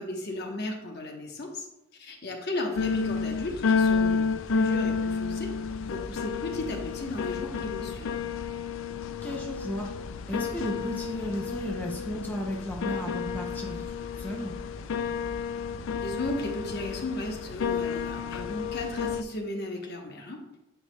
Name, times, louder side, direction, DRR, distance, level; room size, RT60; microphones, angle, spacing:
voice 1, 0.0-1.7 2.0-5.5 5.8-8.2 16.0-20.6, left 1 dB, 50° left, 2 dB, 1.0 m, -35 dB
sound 1, 2.8-19.2, left 5 dB, 65° left, 0.3 m, -31 dB
voice 2, 9.2-9.9 10.3-13.9 14.2-14.5, equal, 10° left, -1 dB, 0.5 m, -34 dB
8.8 x 4.8 x 2.2 m, 0.91 s
head